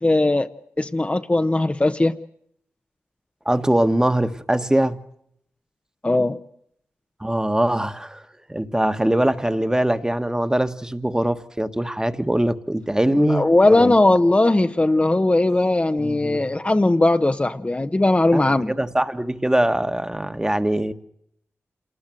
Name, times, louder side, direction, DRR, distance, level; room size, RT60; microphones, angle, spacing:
voice 1, 0.0-0.5 0.8-2.2 6.0-6.4 13.1-18.7, left 2 dB, 25° left, 7 dB, 1.0 m, -19 dB
voice 2, 3.4-5.0 7.2-8.2 8.5-13.9 16.0-16.5 18.3-20.9, right 1 dB, 10° right, 9 dB, 1.5 m, -22 dB
27.0 x 19.5 x 7.8 m, 0.72 s
cardioid pair, 50°, 5 cm